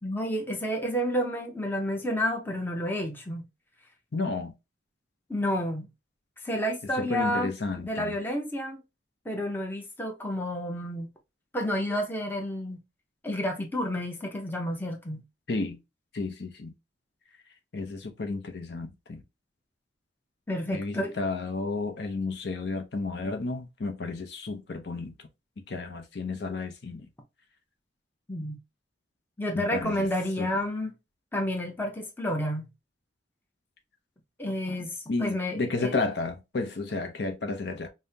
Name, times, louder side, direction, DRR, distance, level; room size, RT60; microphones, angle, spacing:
voice 1, 0.0-3.4 5.3-5.9 6.4-7.5 7.8-8.8 9.2-11.1 11.5-12.8 13.2-15.2 20.5-21.1 28.3-28.6 29.4-30.9 31.3-32.7 34.4-36.0, equal, 10° left, 0.7 m, -30 dB
voice 2, 4.1-4.5 6.9-8.2 15.5-15.8 16.1-16.7 17.7-19.2 20.7-25.3 25.7-27.1 29.5-30.1 30.4-30.5 35.1-37.9, left 3 dB, 60° left, 0.6 m, -32 dB
5.4 x 2.1 x 2.7 m
head